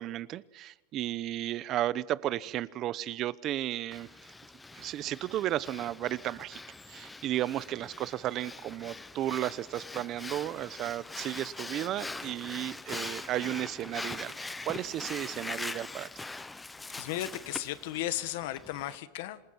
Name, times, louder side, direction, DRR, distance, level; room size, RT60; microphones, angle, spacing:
voice 1, 0.0-4.1 4.7-6.6 6.9-16.1, right 13 dB, 35° right, 18 dB, 0.8 m, -34 dB
Breathing, 3.9-19.0, left 3 dB, 5° left, 0.6 m, -43 dB
voice 2, 16.9-19.4, left 14 dB, 65° left, 12 dB, 1.6 m, -35 dB
27.5 x 20.0 x 6.1 m, 1.1 s
supercardioid pair, 160°, 0 cm